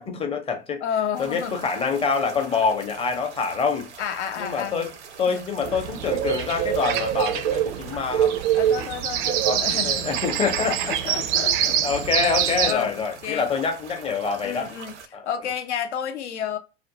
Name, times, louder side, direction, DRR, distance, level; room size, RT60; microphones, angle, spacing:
voice 1, 0.0-0.8 1.2-3.9 4.4-4.9 5.2-8.3 9.4-11.0 11.8-14.7 15.1-15.3, left 5 dB, 15° left, 0.6 m, -26 dB
voice 2, 0.8-1.6 4.0-4.8 5.3-5.4 8.5-9.9 10.6-11.8 12.6-13.5 14.4-14.9 15.3-16.6, left 8 dB, 75° left, 0.7 m, -30 dB
sound 1, 1.1-15.1, right 6 dB, 85° right, 0.6 m, -43 dB
sound 2, 5.6-12.7, right 10 dB, 45° right, 0.4 m, -24 dB
2.5 x 2.0 x 2.7 m
hypercardioid pair, 105°, 34 cm